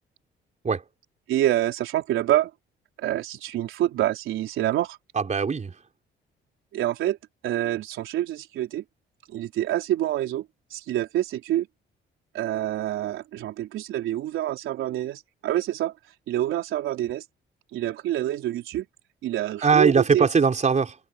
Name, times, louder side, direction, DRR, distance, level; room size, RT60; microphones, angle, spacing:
voice 1, 1.3-2.5 3.0-5.0 6.7-7.2 7.4-8.8 9.3-10.4 10.7-11.7 12.3-15.9 16.3-17.2 17.7-18.9 19.2-20.3, right 13 dB, 85° right, 4.3 m, -26 dB
voice 2, 5.1-5.7 19.6-21.0, right 5 dB, 35° right, 4.5 m, -21 dB
cardioid pair, 90°, 20 cm